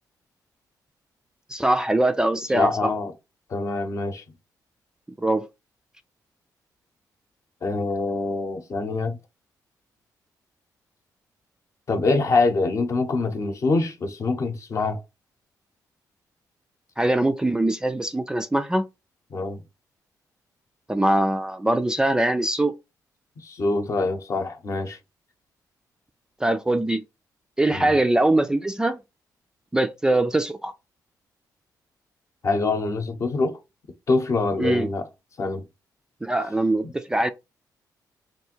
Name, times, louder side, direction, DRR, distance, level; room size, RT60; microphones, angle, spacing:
voice 1, 1.5-2.9 5.2-5.5 17.0-18.9 20.9-22.7 26.4-27.0 27.6-29.0 29.7-30.7 34.6-34.9 36.2-37.3, right 1 dB, 10° right, 0.3 m, -22 dB
voice 2, 2.5-3.1 3.5-4.2 7.6-9.2 11.9-15.0 19.3-19.6 23.4-25.0 27.7-28.0 32.4-33.6 34.1-35.1 35.4-35.6 36.8-36.9, left 3 dB, 45° left, 0.8 m, -25 dB
3.3 x 2.5 x 4.4 m
cardioid pair, 115°, 7 cm